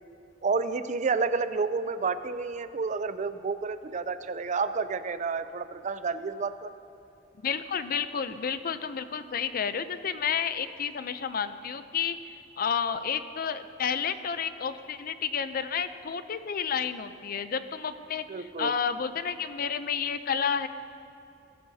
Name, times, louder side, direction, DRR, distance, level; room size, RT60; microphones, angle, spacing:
voice 1, 0.4-6.7 18.3-18.7, right 4 dB, 40° right, 12 dB, 0.5 m, -30 dB
voice 2, 7.4-12.2 12.6-20.7, left 7 dB, 50° left, 12 dB, 0.5 m, -31 dB
22.0 x 12.0 x 2.8 m, 2.8 s
head